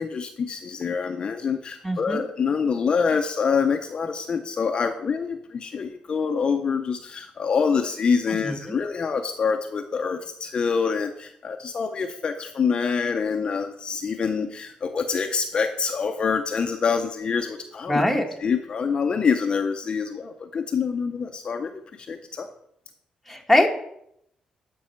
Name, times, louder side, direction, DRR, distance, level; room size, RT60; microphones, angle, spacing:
voice 1, 0.0-18.1 18.4-22.5, left 5 dB, 40° left, 5 dB, 0.6 m, -26 dB
voice 2, 1.8-2.2 8.4-8.5 17.9-18.2 23.3-23.7, left 1 dB, ahead, 1 dB, 1.3 m, -21 dB
12.0 x 5.4 x 4.4 m, 0.74 s
cardioid pair, 125°, 2 cm